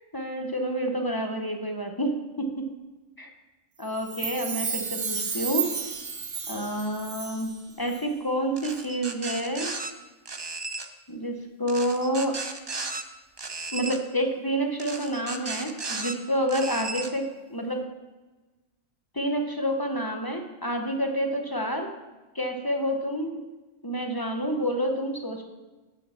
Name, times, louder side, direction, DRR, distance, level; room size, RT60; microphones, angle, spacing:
voice 1, 0.1-2.6 3.2-3.3 3.8-5.7 6.5-7.5 7.8-9.7 11.1-12.4 13.7-17.8 19.1-21.9 22.3-23.4 23.8-25.4, equal, 20° left, 3 dB, 0.7 m, -28 dB
Chime, 4.0-7.6 7.9-8.0, right 6 dB, 65° right, 1.4 m, -32 dB
sound 1, 8.6-9.9 10.3-10.9 11.7-13.0 13.4-14.0 14.8-16.1 16.5-17.1, right 3 dB, 35° right, 0.4 m, -35 dB
8.8 x 6.3 x 5.7 m, 1.2 s
omnidirectional pair, 1.4 m